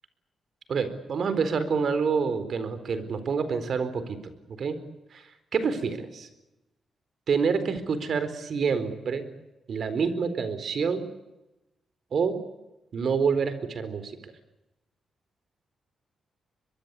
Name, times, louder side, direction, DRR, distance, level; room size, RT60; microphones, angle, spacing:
voice 1, 0.7-4.2 4.6-4.8 5.1-5.2 5.5-6.3 7.3-9.3 9.7-11.0 12.1-12.4 12.9-14.1, right 5 dB, 60° right, 12 dB, 4.2 m, -27 dB
23.5 x 23.0 x 8.4 m, 0.95 s
cardioid pair, 100°, 0 cm